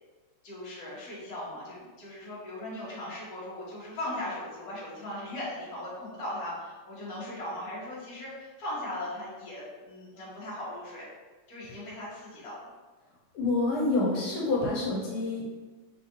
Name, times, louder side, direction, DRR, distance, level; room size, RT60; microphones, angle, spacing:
voice 1, 0.4-11.1 11.5-12.6, left 1 dB, 50° left, -7 dB, 1.7 m, -38 dB
voice 2, 13.3-15.5, left 2 dB, 85° left, -3 dB, 1.7 m, -27 dB
4.1 x 3.5 x 2.9 m, 1.3 s
omnidirectional pair, 2.3 m